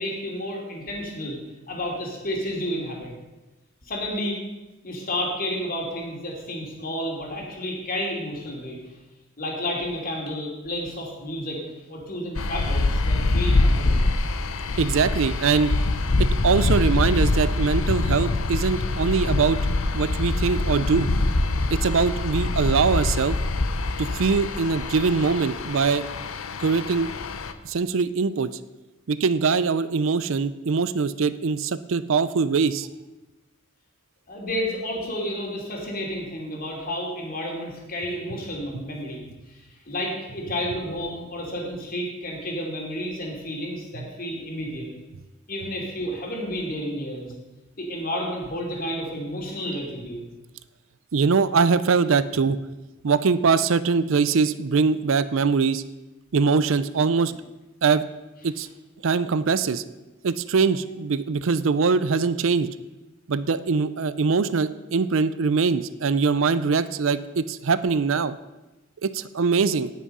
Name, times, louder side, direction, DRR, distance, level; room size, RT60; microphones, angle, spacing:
voice 1, 0.0-1.4 1.7-3.1 3.8-4.4 4.8-8.8 9.4-11.6 11.9-14.1 21.5-21.6 34.3-39.2 39.5-39.6 39.9-44.9 45.5-47.3 47.8-50.2, equal, 45° left, -1 dB, 3.0 m, -31 dB
sound 1, 12.4-27.5, left 2 dB, 80° left, 0.8 m, -24 dB
voice 2, 14.8-15.7 16.2-19.6 19.9-21.1 21.7-23.4 24.0-26.0 26.6-27.1 27.6-28.5 29.1-32.9 43.9-44.0 51.1-52.6 53.0-55.8 56.3-57.3 57.8-58.0 58.4-58.7 59.0-59.8 60.2-62.7 63.3-68.4 69.0-69.9, right 5 dB, 70° right, 15 dB, 0.5 m, -22 dB
17.5 x 6.2 x 5.4 m, 1.1 s
head